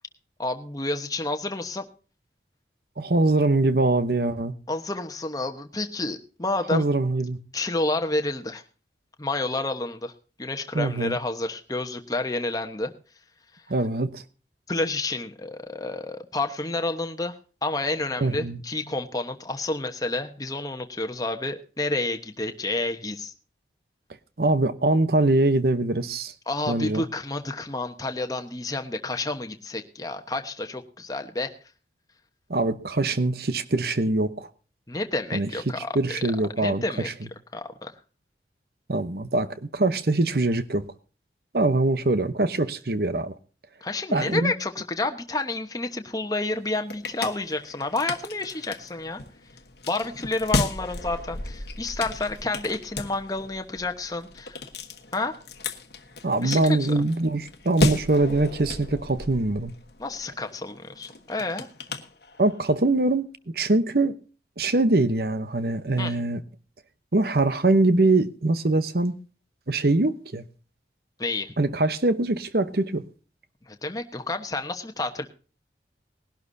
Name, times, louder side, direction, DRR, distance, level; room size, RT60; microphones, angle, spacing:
voice 1, 0.4-1.8 4.7-6.8 7.5-8.6 9.2-10.1 10.4-12.9 14.7-23.3 26.5-31.5 34.9-35.9 36.6-37.1 37.5-37.9 43.8-49.2 49.9-54.6 55.1-55.4 56.4-56.8 60.0-61.7 66.0-66.1 71.2-71.6 73.7-75.3, left 2 dB, 20° left, 1.1 m, -29 dB
voice 2, 3.0-4.5 6.7-7.4 10.7-11.2 13.7-14.2 18.2-18.6 24.4-26.3 26.7-27.0 32.5-34.5 35.3-35.5 35.8-37.1 38.9-40.9 41.5-43.3 44.1-44.5 56.2-59.7 62.4-63.3 63.5-64.2 64.6-66.4 67.1-69.1 69.7-70.4 71.6-73.0, right 2 dB, 55° right, 0.9 m, -23 dB
sound 1, 46.5-62.7, left 2 dB, 60° left, 1.2 m, -34 dB
20.0 x 11.5 x 2.7 m
head